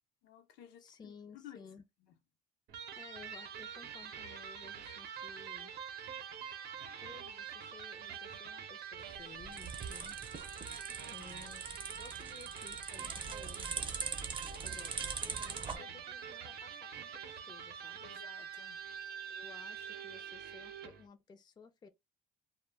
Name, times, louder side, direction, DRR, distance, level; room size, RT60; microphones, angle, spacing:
voice 1, 0.2-1.7 10.9-11.3 15.8-16.0 18.0-18.8, left 10 dB, 85° left, 0.7 m, -55 dB
voice 2, 0.8-1.9 2.9-5.7 7.0-10.2 11.1-11.7 12.0-13.6 14.6-18.1 19.3-21.9, left 5 dB, 25° left, 0.4 m, -56 dB
Electric guitar, 2.7-21.1, right 7 dB, 70° right, 0.6 m, -45 dB
sound 1, 9.0-15.8, right 5 dB, 30° right, 0.6 m, -42 dB
2.2 x 2.1 x 3.3 m
cardioid pair, 110°, 17 cm